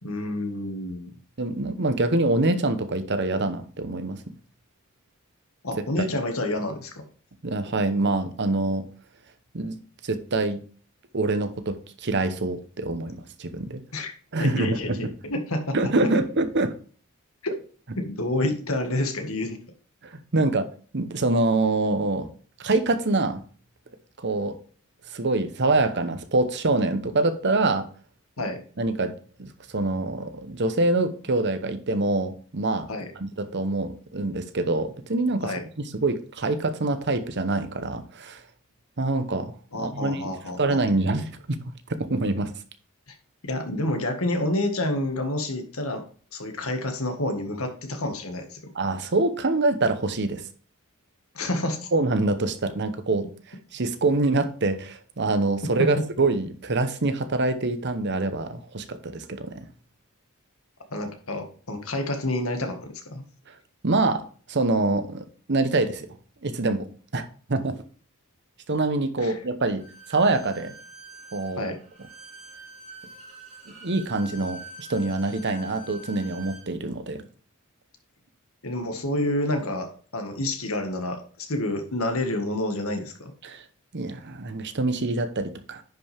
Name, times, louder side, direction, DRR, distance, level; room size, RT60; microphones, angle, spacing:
voice 1, 0.0-1.1 5.6-7.0 13.9-14.1 14.4-15.8 18.0-19.6 28.4-28.6 32.9-33.1 35.4-35.6 39.7-40.8 43.1-43.2 43.4-46.0 46.3-48.6 51.3-51.9 55.8-55.9 60.9-63.2 69.2-69.4 71.6-71.8 78.6-83.3, left 1 dB, 80° left, 1.8 m, -29 dB
voice 2, 1.4-4.2 7.4-8.9 9.5-9.8 10.0-10.6 11.1-13.8 14.3-15.1 15.7-16.7 20.0-20.7 20.9-22.3 22.6-23.4 24.2-24.6 25.1-27.9 28.8-32.9 33.2-38.4 39.0-41.6 41.9-42.5 48.7-50.4 51.9-53.3 53.7-59.7 63.8-66.1 66.4-67.8 68.7-69.8 70.1-70.7 71.3-71.7 73.7-77.3 83.4-83.6 83.9-85.8, right 2 dB, 55° right, 0.9 m, -25 dB
Bowed string instrument, 69.8-76.7, right 2 dB, 30° right, 2.9 m, -45 dB
10.0 x 5.6 x 3.5 m
head